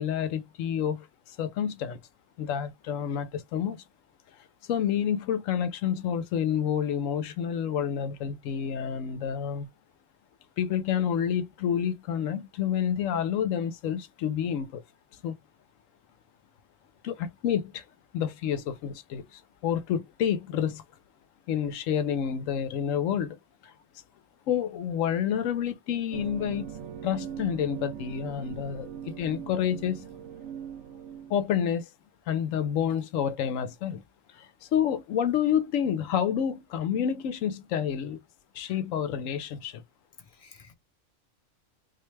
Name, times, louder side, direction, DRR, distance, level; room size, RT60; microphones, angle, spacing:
voice 1, 0.0-2.0 2.4-3.8 4.7-9.7 10.6-14.8 15.2-15.4 17.0-17.8 18.1-20.8 21.5-23.4 23.6-23.7 24.5-26.7 27.0-30.1 31.3-31.9 32.3-34.0 34.3-38.2 38.5-39.8, left 9 dB, 85° left, 1.0 m, -29 dB
sound 1, 26.1-31.4, right 8 dB, 70° right, 0.9 m, -40 dB
voice 2, 40.2-40.7, left 5 dB, 40° left, 0.6 m, -53 dB
4.0 x 2.2 x 3.1 m
omnidirectional pair, 1.3 m